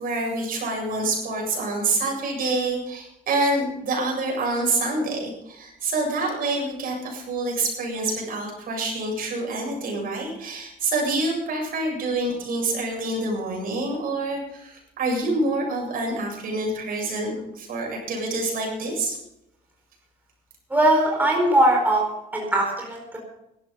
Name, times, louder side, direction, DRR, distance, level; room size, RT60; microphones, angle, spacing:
voice 1, 0.0-19.2, right 2 dB, 60° right, 0 dB, 7.7 m, -27 dB
voice 2, 20.7-22.0 22.3-23.2, right 1 dB, 10° right, -1 dB, 4.6 m, -20 dB
16.0 x 12.5 x 5.6 m, 0.86 s
cardioid pair, 110°, 17 cm